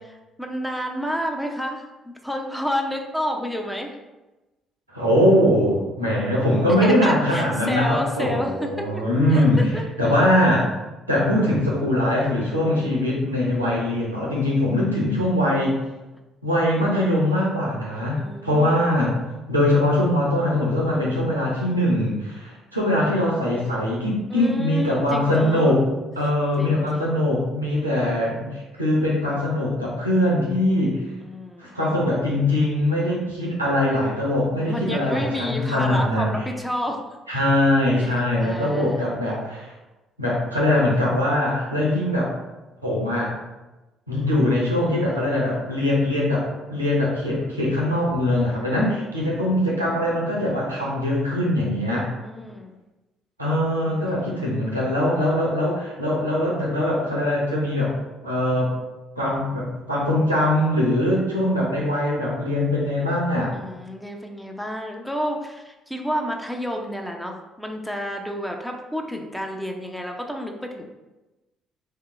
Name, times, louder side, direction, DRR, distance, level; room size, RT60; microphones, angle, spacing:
voice 1, 0.0-1.9 2.2-3.9 6.8-9.0 9.3-9.8 12.6-13.2 15.0-15.2 18.2-18.9 20.9-21.5 24.3-25.8 26.6-27.3 31.2-31.8 34.6-37.1 38.0-38.1 38.4-39.1 51.9-52.7 53.8-54.0 63.5-70.9, equal, 5° left, 2 dB, 0.5 m, -30 dB
voice 2, 4.9-9.6 10.0-10.7 11.1-15.7 16.4-19.1 19.5-25.8 26.2-31.0 31.6-36.4 37.3-39.7 40.2-42.3 42.8-43.3 44.1-52.1 53.4-57.9 58.2-58.7 59.2-63.5, left 1 dB, 85° right, -4 dB, 0.7 m, -22 dB
3.2 x 2.8 x 3.5 m, 1.1 s
figure-of-eight pair, 45°, 0 cm